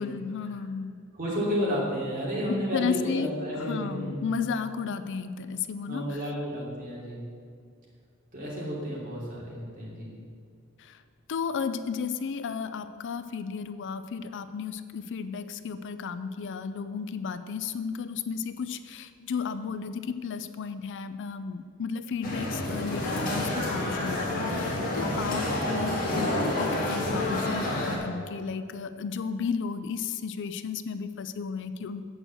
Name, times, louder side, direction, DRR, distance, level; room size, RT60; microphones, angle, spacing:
voice 1, 0.0-1.0 2.5-3.3 3.5-6.3 10.8-11.0 11.3-26.3 26.6-32.0, left 5 dB, 60° left, 12 dB, 0.4 m, -33 dB
voice 2, 1.1-4.2 5.9-7.2 8.3-10.1 25.4-25.6, equal, 40° right, -5 dB, 3.0 m, -32 dB
sound 1, 22.2-28.0, left 1 dB, 40° left, 2.1 m, -29 dB
7.8 x 6.3 x 7.8 m, 2.2 s
head